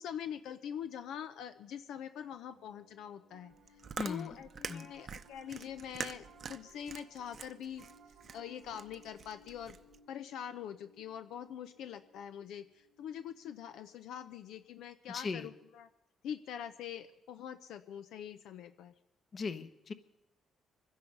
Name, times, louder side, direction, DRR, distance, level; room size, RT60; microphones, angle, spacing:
voice 1, 0.0-3.5 4.0-7.9 8.3-9.8 10.1-15.9 16.2-18.9, left 9 dB, 85° left, 10 dB, 0.6 m, -44 dB
Piano, 2.5-14.0, right 2 dB, 80° right, 1.2 m, -63 dB
Chewing mastication, 3.5-10.0, right 6 dB, 50° right, 0.7 m, -45 dB
voice 2, 4.0-4.4 4.7-4.9 15.1-15.5 19.3-19.9, left 4 dB, 45° left, 11 dB, 1.1 m, -38 dB
24.0 x 10.5 x 5.4 m, 0.92 s
cardioid pair, 90°, 0 cm